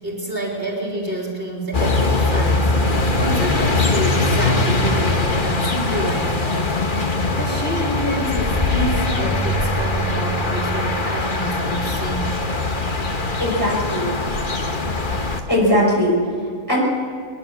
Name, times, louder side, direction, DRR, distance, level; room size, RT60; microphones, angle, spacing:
voice 1, 0.0-6.8 7.4-12.3, right 1 dB, 45° right, -2 dB, 3.7 m, -28 dB
sound 1, 1.7-15.4, left 2 dB, 40° left, 1.6 m, -21 dB
voice 2, 13.4-14.1 15.5-16.8, equal, 15° left, -3 dB, 5.8 m, -19 dB
22.5 x 21.0 x 7.2 m, 2.2 s
omnidirectional pair, 1.4 m